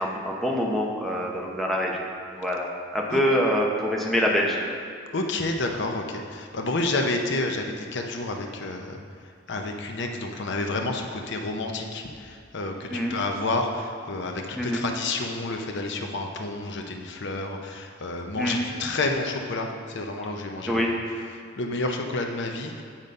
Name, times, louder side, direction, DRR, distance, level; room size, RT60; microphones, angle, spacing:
voice 1, 0.0-2.0 2.3-2.7 2.9-4.6 12.9-13.2 14.6-14.8 18.3-18.7 20.7-20.9, equal, ahead, -2 dB, 0.8 m, -25 dB
voice 2, 5.1-9.0 9.5-20.9 21.6-22.8, left 2 dB, 60° left, 3 dB, 0.7 m, -29 dB
8.8 x 4.0 x 5.3 m, 2.2 s
head